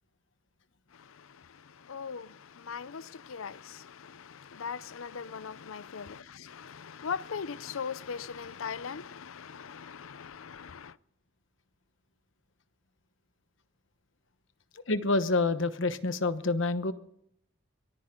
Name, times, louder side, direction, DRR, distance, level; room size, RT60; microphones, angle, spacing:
voice 1, 0.9-11.0, left 6 dB, 85° left, 0.6 m, -40 dB
voice 2, 14.9-16.9, left 3 dB, 70° left, 1.1 m, -27 dB
23.0 x 14.5 x 3.8 m
head